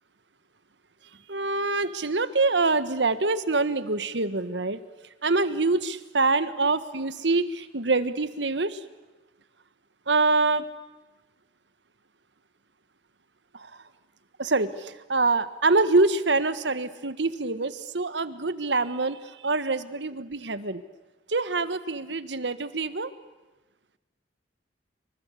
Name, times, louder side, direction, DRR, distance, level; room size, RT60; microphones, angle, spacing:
voice 1, 1.3-4.8 5.2-8.8 10.1-10.6 13.5-13.7 14.4-20.8 21.3-23.1, right 3 dB, 85° right, 14 dB, 1.5 m, -25 dB
27.5 x 24.0 x 8.5 m, 1.1 s
head